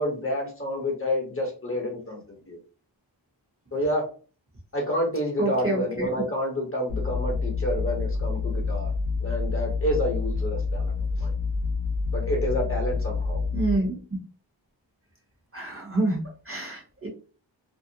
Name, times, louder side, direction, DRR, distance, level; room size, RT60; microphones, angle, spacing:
voice 1, 0.0-2.2 2.5-2.6 3.7-4.0 4.7-8.9 9.2-11.3 12.1-13.4, left 1 dB, 30° left, -1 dB, 0.9 m, -29 dB
voice 2, 5.4-6.1 13.5-13.9 15.5-16.2 16.5-17.1, right 2 dB, 30° right, -1 dB, 0.9 m, -27 dB
sound 1, 6.9-13.8, left 4 dB, 80° right, 1.0 m, -28 dB
2.6 x 2.0 x 2.7 m, 0.38 s
wide cardioid pair, 70°, 46 cm